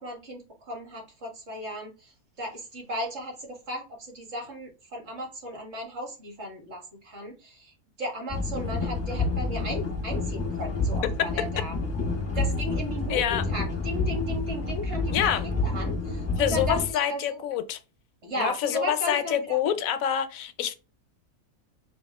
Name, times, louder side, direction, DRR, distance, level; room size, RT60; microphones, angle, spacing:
voice 1, 0.0-11.7 12.4-16.8 17.1-17.4 18.2-19.6, equal, 50° right, 1.7 m, -36 dB
sound 1, 8.3-16.9, left 3 dB, 15° left, 0.6 m, -29 dB
voice 2, 13.1-13.4 15.1-15.5 16.4-17.8 18.4-20.7, left 10 dB, 75° left, 0.9 m, -26 dB
4.1 x 2.6 x 3.4 m
omnidirectional pair, 1.6 m